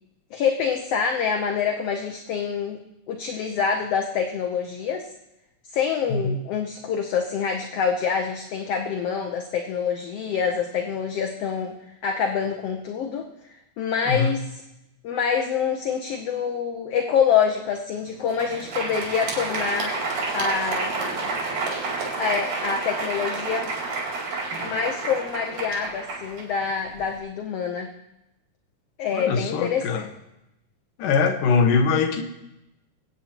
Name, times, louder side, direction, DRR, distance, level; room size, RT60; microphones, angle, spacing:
voice 1, 0.3-2.8 3.1-5.1 5.7-11.7 12.0-13.3 13.8-14.6 15.0-20.0 20.3-21.3 22.2-23.7 24.6-27.9 29.0-29.9, left 6 dB, 70° left, 1.6 m, -26 dB
voice 2, 14.1-14.4 29.1-30.1 31.0-32.2, left 5 dB, 85° left, 2.6 m, -22 dB
Crowd, 18.2-27.1, right 3 dB, 80° right, 3.8 m, -30 dB
24.5 x 8.5 x 2.9 m
omnidirectional pair, 3.6 m